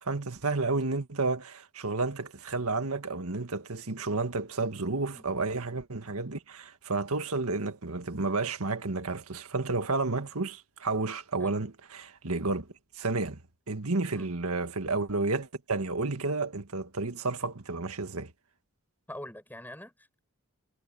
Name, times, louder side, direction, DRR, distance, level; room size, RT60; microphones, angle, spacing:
voice 1, 0.0-12.7 13.0-13.4 13.7-18.3, right 3 dB, 75° right, 1.7 m, -31 dB
voice 2, 19.1-20.2, left 1 dB, 10° left, 7.0 m, -44 dB
head